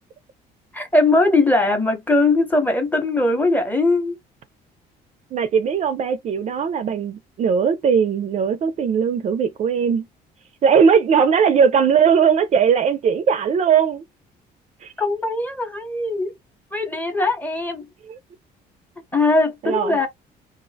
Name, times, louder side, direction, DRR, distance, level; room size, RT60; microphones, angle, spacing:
voice 1, 0.7-4.2 15.0-16.3 16.7-17.9 19.1-20.1, left 2 dB, 10° left, 0.6 m, -20 dB
voice 2, 5.3-10.1 10.6-14.0 14.8-14.9 18.1-18.2 19.6-20.0, right 7 dB, 45° right, 0.4 m, -19 dB
2.3 x 2.1 x 2.6 m
cardioid pair, 110°, 17 cm